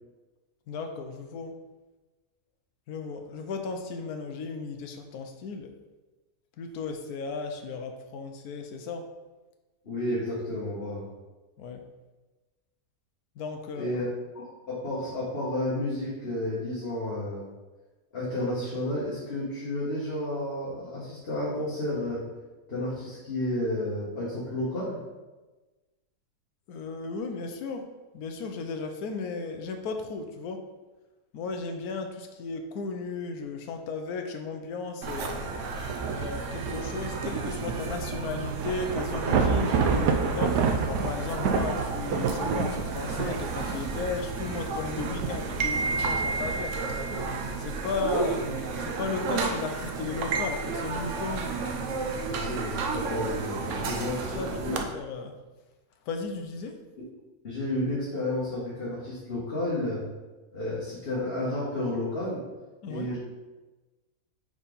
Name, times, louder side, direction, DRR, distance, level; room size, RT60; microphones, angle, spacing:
voice 1, 0.7-1.6 2.9-5.7 6.6-9.1 11.6-11.8 13.4-14.0 26.7-27.9 28.1-30.6 31.3-35.4 36.0-46.8 47.6-48.4 48.8-51.5 53.8-53.9 54.4-55.3 56.1-56.8 62.8-63.2, left 4 dB, 70° left, 5 dB, 1.2 m, -35 dB
voice 2, 9.8-11.1 13.7-14.1 14.3-17.5 18.1-22.3 22.7-25.0 41.5-41.6 52.2-54.8 57.0-57.1 57.4-60.0 60.5-62.4 62.8-63.2, left 1 dB, 40° left, -8 dB, 1.7 m, -31 dB
sound 1, 35.0-54.8, right 4 dB, 60° right, 0.9 m, -32 dB
Thunder / Rain, 35.7-46.6, right 5 dB, 85° right, 1.2 m, -30 dB
4.8 x 4.2 x 5.2 m, 1.2 s
omnidirectional pair, 1.7 m